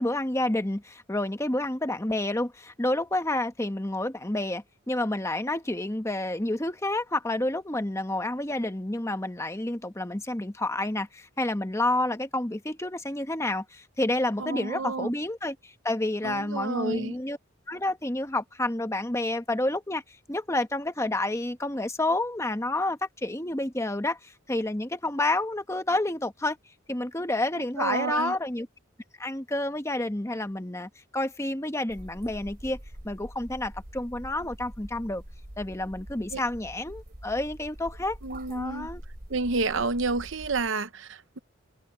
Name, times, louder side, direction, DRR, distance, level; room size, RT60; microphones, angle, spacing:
voice 1, 0.0-17.4 17.7-20.0 20.3-26.6 26.9-28.7 29.2-32.8 33.0-35.2 35.6-38.2 38.5-39.0, left 2 dB, 15° left, 1.1 m, -29 dB
voice 2, 14.4-15.1 16.2-17.2 27.8-28.3 36.3-36.4 38.2-38.9 39.3-41.4, right 3 dB, 65° right, 0.9 m, -30 dB
sound 1, 31.9-40.7, right 1 dB, 50° right, 3.1 m, -45 dB
head